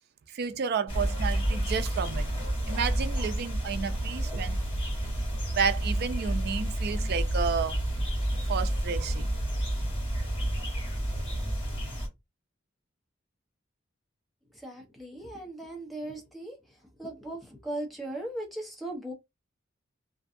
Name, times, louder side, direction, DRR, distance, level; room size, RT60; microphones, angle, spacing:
voice 1, 0.3-2.3 2.7-4.6 5.5-7.8 8.5-9.3, right 6 dB, 55° right, 0.4 m, -31 dB
sound 1, 0.9-12.1, right 1 dB, 25° left, 1.5 m, -30 dB
voice 2, 14.6-16.5 17.0-19.1, right 1 dB, ahead, 0.7 m, -38 dB
2.5 x 2.3 x 2.5 m
head